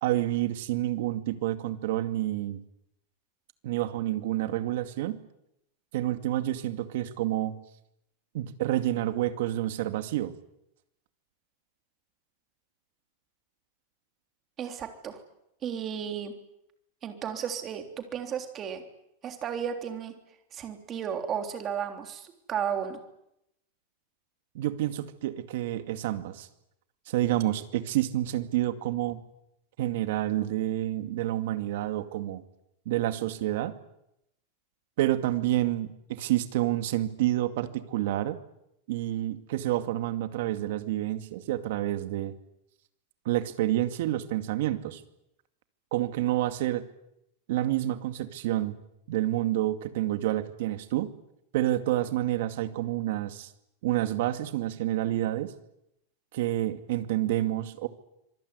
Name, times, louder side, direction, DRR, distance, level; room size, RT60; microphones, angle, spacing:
voice 1, 0.0-2.6 3.6-5.2 5.9-7.6 8.3-10.3 24.5-26.5 27.1-29.2 29.8-32.4 32.9-33.8 35.0-38.4 38.9-42.3 43.3-45.0 45.9-46.9 47.5-48.8 49.1-51.1 51.5-53.5 53.8-55.5 56.3-57.9, right 14 dB, 65° right, 9 dB, 2.3 m, -28 dB
voice 2, 14.6-15.2 15.6-16.3 17.0-17.8 18.1-18.8 19.2-20.1 20.5-23.0, right 8 dB, 25° right, 6 dB, 3.4 m, -33 dB
26.0 x 20.5 x 9.7 m, 0.82 s
supercardioid pair, 165°, 0 cm